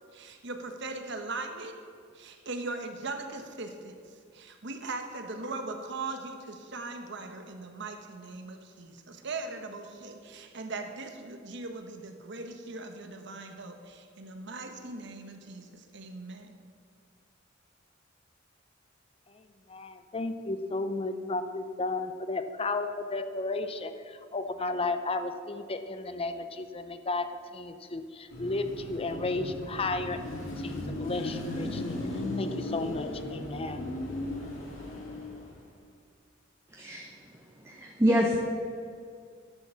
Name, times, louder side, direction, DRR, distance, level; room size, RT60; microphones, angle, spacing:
voice 1, 0.1-1.8 2.1-4.0 4.3-16.5, right 3 dB, 65° right, 6 dB, 1.1 m, -39 dB
voice 2, 19.3-33.8, left 3 dB, 30° left, 9 dB, 0.6 m, -34 dB
Car passing by / Traffic noise roadway noise / Engine, 28.3-35.6, left 1 dB, 90° left, 3.1 m, -36 dB
voice 3, 36.7-37.1 37.6-38.4, equal, 15° right, 0 dB, 0.9 m, -26 dB
11.5 x 6.8 x 7.0 m, 2.2 s
head